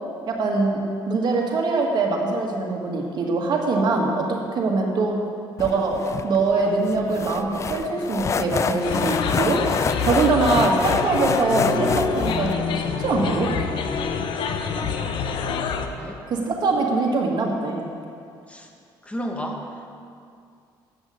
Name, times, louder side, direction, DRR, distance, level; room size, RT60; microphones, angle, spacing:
voice 1, 0.3-0.8 1.0-5.2 5.6-6.0 6.2-9.6 10.0-13.5 16.3-17.9, right 3 dB, 55° right, 0 dB, 1.7 m, -23 dB
sound 1, 5.6-12.5, left 6 dB, 35° left, 0.3 m, -28 dB
sound 2, 8.8-15.9, left 6 dB, 65° left, 0.7 m, -27 dB
voice 2, 19.0-19.6, equal, 15° left, 2 dB, 1.2 m, -32 dB
8.1 x 6.2 x 7.7 m, 2.4 s
cardioid pair, 105°, 9 cm